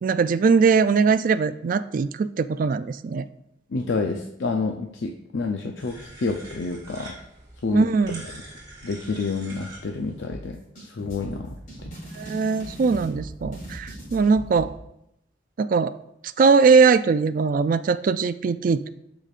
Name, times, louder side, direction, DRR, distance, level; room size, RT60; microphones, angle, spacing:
voice 1, 0.0-3.2 7.7-8.3 12.1-14.7 15.6-15.9 16.4-18.9, right 5 dB, 45° right, 13 dB, 0.3 m, -20 dB
voice 2, 3.7-7.1 7.6-7.9 8.8-10.6 10.9-11.6 11.8-11.9, left 4 dB, 65° left, 3 dB, 0.5 m, -28 dB
sound 1, 5.8-10.2, right 1 dB, 20° right, 2.8 m, -44 dB
sound 2, 10.3-14.7, right 1 dB, 40° left, 3.3 m, -39 dB
13.5 x 5.1 x 2.5 m, 0.80 s
head